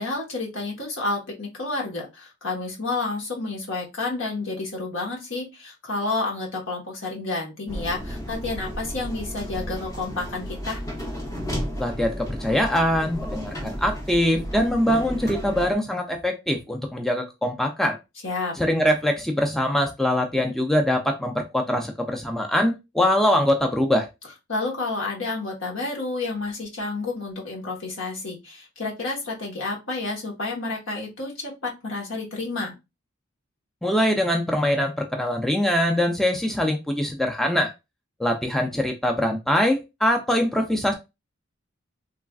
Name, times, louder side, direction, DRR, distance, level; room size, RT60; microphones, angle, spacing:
voice 1, 0.0-10.8 18.2-18.5 24.5-32.7, left 3 dB, 70° left, -2 dB, 1.2 m, -30 dB
sound 1, 7.7-15.8, equal, 15° left, 0.7 m, -33 dB
voice 2, 11.8-18.0 18.6-24.1 33.8-37.7 38.2-40.9, left 1 dB, ahead, 3 dB, 0.3 m, -23 dB
3.2 x 2.4 x 2.3 m, 0.24 s
head